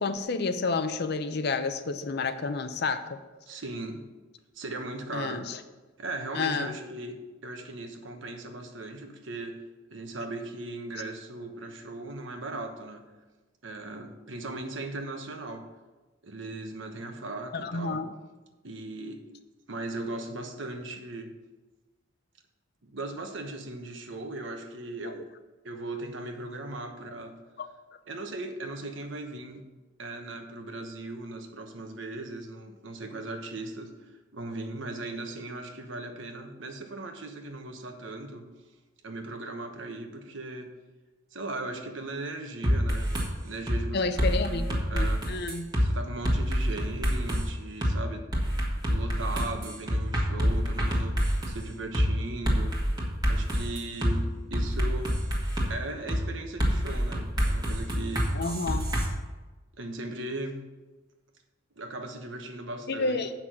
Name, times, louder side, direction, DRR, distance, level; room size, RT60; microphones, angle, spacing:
voice 1, 0.0-3.2 5.1-5.6 6.3-6.8 17.5-18.1 25.0-25.2 27.6-27.7 43.9-45.7 58.3-58.9 62.9-63.3, left 4 dB, 55° left, 10 dB, 0.6 m, -30 dB
voice 2, 3.5-4.1 4.5-5.5 6.0-9.6 9.9-13.1 13.6-15.7 16.2-18.0 18.6-19.2 19.7-21.4 22.8-25.3 25.6-27.4 28.1-29.7 30.0-38.5 39.0-40.7 41.3-43.1 43.4-45.3 45.8-48.3 48.9-51.2 51.5-52.8 53.3-55.2 55.7-58.3 59.8-60.7 61.8-63.2, right 2 dB, 75° right, 5 dB, 1.1 m, -38 dB
sound 1, 42.6-43.3 43.7-43.8 44.2-45.9 46.2-47.4 47.8-47.9 48.3-51.6 51.9-52.1 52.5-54.1 54.5-55.7 56.1-56.2 56.6-59.1, equal, 20° right, 1.7 m, -26 dB
8.1 x 6.0 x 6.1 m, 1.2 s
head